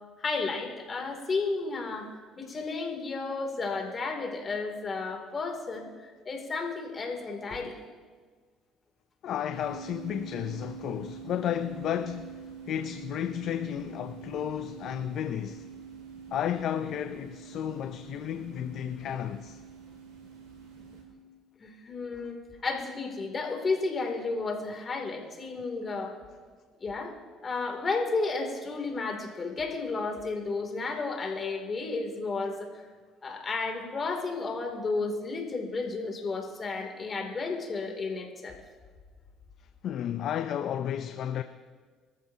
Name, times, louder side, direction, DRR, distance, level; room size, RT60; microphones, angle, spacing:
voice 1, 0.2-2.1 2.4-7.8 21.6-26.2 26.8-27.1 27.4-32.8 33.2-38.6, left 3 dB, 35° left, 2.8 m, -32 dB
voice 2, 9.2-15.6 16.3-19.6 39.8-41.4, left 10 dB, 60° left, 0.6 m, -33 dB
sound 1, 9.5-21.0, right 7 dB, 90° right, 5.2 m, -45 dB
25.0 x 14.0 x 2.9 m
cardioid pair, 95°, 0 cm